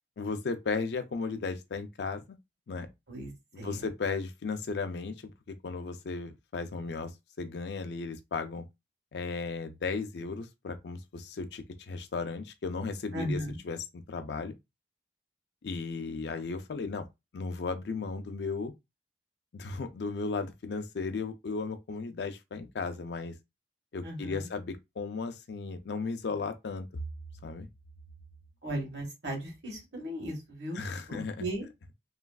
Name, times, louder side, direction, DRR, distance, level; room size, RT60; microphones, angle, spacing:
voice 1, 0.2-2.4 2.7-2.9 3.6-8.6 9.1-13.4 13.6-14.5 15.6-17.1 17.3-18.7 19.5-23.3 23.9-26.9 27.4-27.7 30.7-31.5, left 4 dB, 70° left, 0.4 m, -35 dB
voice 2, 3.1-3.8 13.1-13.6 24.0-24.5 28.6-31.7, right 1 dB, 80° right, 1.5 m, -37 dB
3.1 x 2.3 x 2.3 m
head